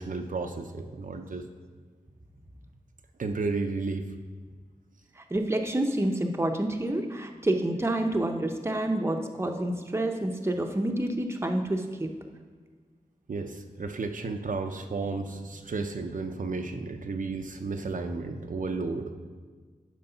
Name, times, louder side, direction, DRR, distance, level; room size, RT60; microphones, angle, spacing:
voice 1, 0.0-1.4 3.2-4.1 13.3-19.1, right 3 dB, 65° right, 4 dB, 0.6 m, -33 dB
voice 2, 5.2-12.1, right 1 dB, 15° right, 3 dB, 0.8 m, -28 dB
9.6 x 4.7 x 5.7 m, 1.5 s
wide cardioid pair, 75°, 15 cm